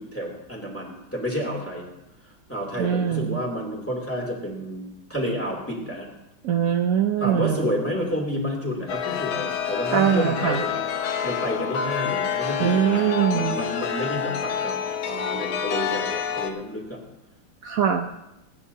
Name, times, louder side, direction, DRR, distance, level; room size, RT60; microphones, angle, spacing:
voice 1, 0.0-1.8 2.5-6.1 7.2-14.8 15.0-17.0, equal, 5° left, -2 dB, 2.9 m, -30 dB
voice 2, 2.8-3.4 6.4-7.7 9.9-10.6 12.6-13.6 17.6-18.1, right 8 dB, 75° right, 5 dB, 0.7 m, -22 dB
Chime, 8.9-16.5, left 8 dB, 75° left, 1.8 m, -28 dB
28.0 x 9.7 x 2.8 m, 0.89 s
omnidirectional pair, 2.3 m